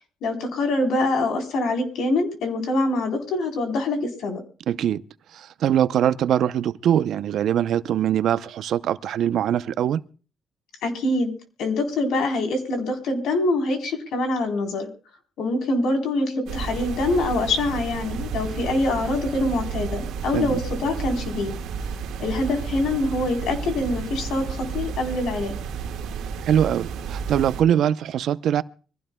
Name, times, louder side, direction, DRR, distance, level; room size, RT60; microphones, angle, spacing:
voice 1, 0.2-4.4 10.8-11.3 11.6-14.9 15.4-21.5 22.2-25.6, left 2 dB, 80° left, 3.8 m, -24 dB
voice 2, 4.7-5.0 5.3-10.0 20.3-20.6 26.4-28.6, right 10 dB, 75° right, 0.6 m, -22 dB
sound 1, 16.5-27.6, right 6 dB, 90° right, 1.7 m, -32 dB
25.0 x 16.0 x 2.3 m
cardioid pair, 90°, 0 cm